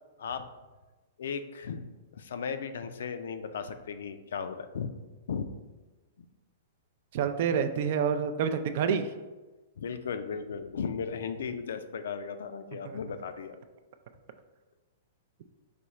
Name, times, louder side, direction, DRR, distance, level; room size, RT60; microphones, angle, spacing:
voice 1, 1.2-1.8 2.1-4.9 5.3-5.5 6.2-6.3 9.8-13.5, left 6 dB, 80° left, 9 dB, 0.3 m, -36 dB
voice 2, 7.1-9.1 12.8-13.0, right 7 dB, 55° right, 9 dB, 0.3 m, -28 dB
4.9 x 2.2 x 4.1 m, 1.2 s
hypercardioid pair, 150°, 0 cm